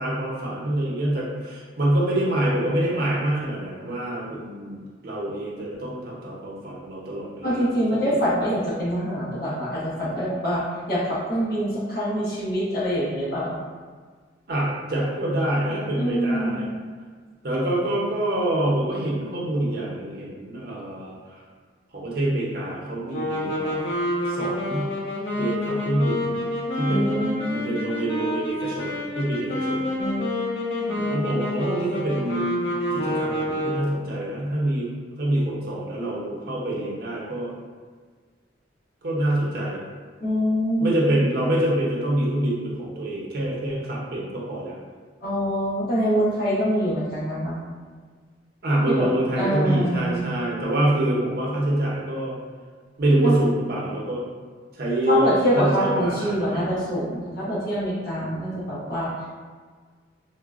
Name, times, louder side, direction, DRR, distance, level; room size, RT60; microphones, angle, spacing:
voice 1, 0.0-8.1 14.5-16.7 17.4-21.1 21.9-24.9 25.4-26.4 26.8-27.2 27.5-29.9 31.0-32.6 32.9-34.9 35.2-37.5 39.0-39.8 40.8-44.7 48.6-52.3 53.0-54.2 54.8-55.3 55.5-56.7 58.2-58.6, right 1 dB, 55° right, -4 dB, 0.7 m, -26 dB
voice 2, 7.4-10.6 10.9-13.5 15.9-16.7 26.8-27.6 30.0-30.3 30.9-31.0 40.2-40.9 45.2-47.6 48.9-49.1 49.4-50.2 53.2-53.3 55.1-59.1, equal, 55° left, -8 dB, 1.0 m, -25 dB
sound 1, 23.1-34.1, left 1 dB, 85° left, 0.7 m, -28 dB
3.8 x 2.1 x 2.4 m, 1.5 s
head